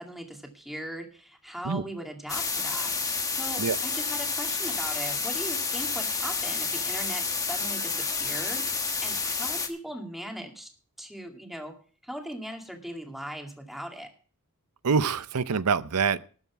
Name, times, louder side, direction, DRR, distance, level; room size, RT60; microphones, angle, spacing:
voice 1, 0.0-2.9 3.3-10.7 11.0-11.8 12.0-14.1, equal, ahead, 2.2 m, -39 dB
sound 1, 2.3-9.7, left 4 dB, 15° left, 1.3 m, -30 dB
voice 2, 14.8-16.2, right 5 dB, 90° right, 0.7 m, -25 dB
13.0 x 7.4 x 7.2 m
head